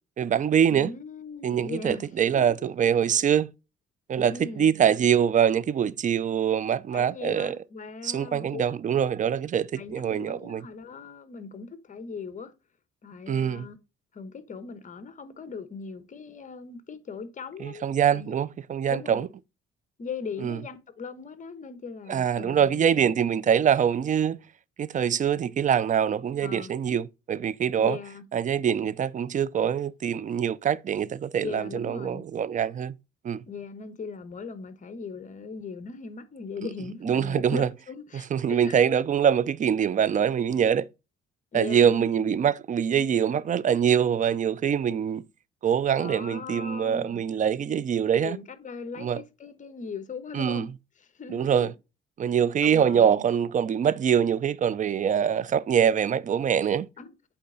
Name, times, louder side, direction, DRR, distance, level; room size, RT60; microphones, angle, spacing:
voice 1, 0.2-0.9 1.4-3.5 4.1-7.6 8.0-10.6 13.3-13.7 17.6-19.3 20.4-20.6 22.1-24.4 24.8-28.0 28.3-32.9 33.2-33.4 37.0-37.7 38.3-40.9 41.5-45.2 45.6-48.4 49.0-49.2 50.3-50.7 51.3-51.7 52.2-56.9, right 8 dB, 40° right, 0.5 m, -24 dB
voice 2, 0.7-2.1 2.3-2.5 4.1-4.8 6.9-8.6 9.7-12.5 13.0-13.8 14.1-18.4 18.9-19.3 20.0-23.1 26.4-26.7 27.8-28.2 31.4-32.3 33.5-38.8 41.5-42.4 46.0-47.2 48.2-50.7 51.0-51.7 52.6-53.2 57.0-57.2, left 5 dB, 40° left, 1.1 m, -39 dB
8.5 x 3.4 x 3.9 m
cardioid pair, 100°, 21 cm